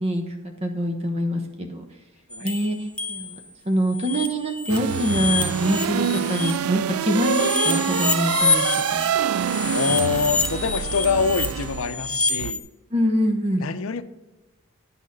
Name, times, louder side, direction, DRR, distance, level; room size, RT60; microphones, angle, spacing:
voice 1, 0.0-1.8 2.4-2.8 3.1-3.4 3.7-8.7 8.9-9.1 12.9-13.7, equal, 30° right, 4 dB, 0.9 m, -24 dB
sound 1, 2.3-3.4 3.8-6.5 7.0-12.6, left 4 dB, 5° left, 0.6 m, -27 dB
sound 2, 4.7-12.5, right 9 dB, 85° right, 0.3 m, -26 dB
voice 2, 9.7-12.7 13.6-14.0, left 6 dB, 75° left, 11 dB, 0.6 m, -25 dB
9.9 x 6.3 x 5.3 m, 1.1 s
head